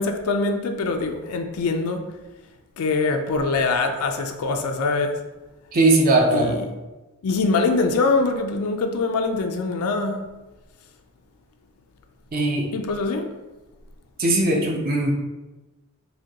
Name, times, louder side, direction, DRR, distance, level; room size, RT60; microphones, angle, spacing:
voice 1, 0.0-2.0 2.8-5.2 6.3-6.7 7.2-10.2 12.7-13.3, left 3 dB, 90° left, 0.4 m, -23 dB
voice 2, 5.7-6.6 12.3-12.7 14.2-15.1, right 2 dB, 40° right, 0.4 m, -19 dB
4.8 x 2.2 x 2.9 m
head